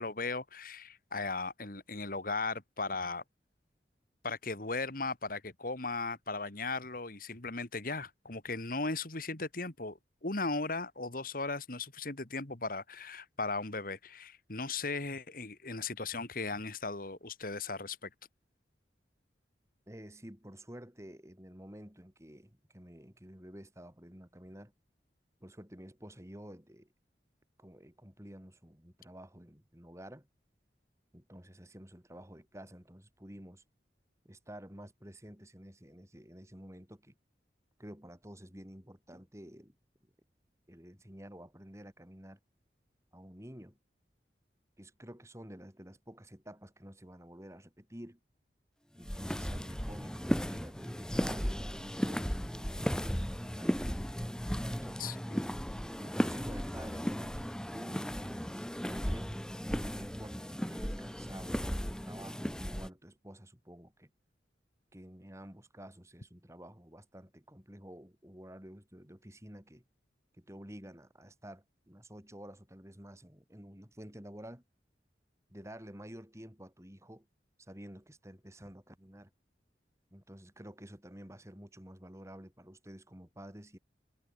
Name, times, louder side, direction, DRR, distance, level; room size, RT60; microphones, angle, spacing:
voice 1, 0.0-3.2 4.2-18.1 55.0-55.4, left 3 dB, 50° left, 2.4 m, -37 dB
voice 2, 19.9-24.7 25.4-26.9 27.6-30.3 31.1-33.6 34.3-37.1 37.8-39.8 40.0-40.1 40.7-42.4 43.1-43.8 44.8-48.2 48.9-53.8 54.6-55.6 56.0-59.3 59.9-64.1 64.9-69.8 70.3-74.6 75.5-77.3 77.6-79.3 80.1-83.8, equal, 15° right, 3.6 m, -50 dB
sound 1, 49.0-62.9, equal, 5° left, 1.4 m, -35 dB
head